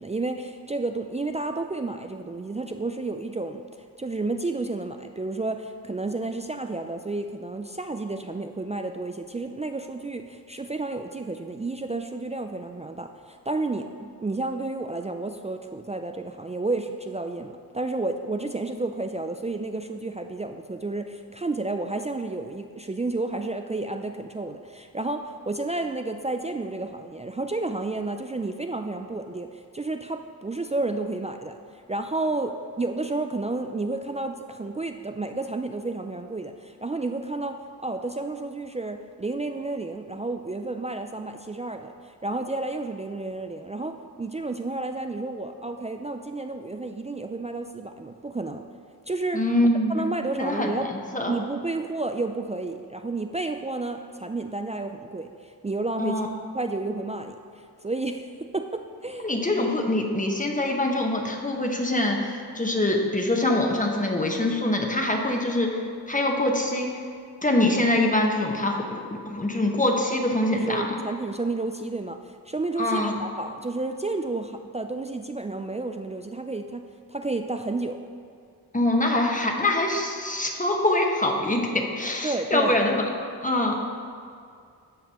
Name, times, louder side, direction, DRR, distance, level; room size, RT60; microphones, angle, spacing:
voice 1, 0.0-3.7 4.0-48.7 49.1-49.4 49.9-50.9 51.3-56.2 56.5-59.3 70.5-76.8 77.1-78.0 82.2-82.8, right 2 dB, 20° right, 5 dB, 0.3 m, -31 dB
voice 2, 49.3-50.1 50.4-50.7 51.1-51.3 56.0-56.3 59.2-65.8 66.1-66.9 67.4-70.9 72.8-73.1 78.7-83.1 83.4-83.8, left 1 dB, 20° left, 1 dB, 1.2 m, -24 dB
13.5 x 5.2 x 3.0 m, 2.3 s
cardioid pair, 60°, 39 cm